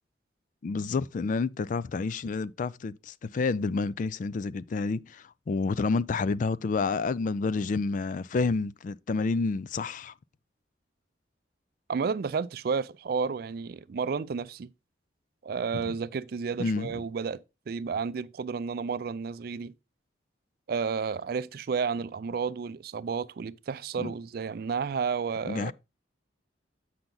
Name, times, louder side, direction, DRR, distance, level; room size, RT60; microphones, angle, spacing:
voice 1, 0.6-10.1 15.7-16.0 16.6-17.0 24.0-24.1 25.4-25.7, left 4 dB, 45° left, 0.3 m, -29 dB
voice 2, 11.9-14.7 15.4-19.7 20.7-25.7, right 5 dB, 60° right, 0.4 m, -31 dB
7.9 x 5.8 x 3.9 m
head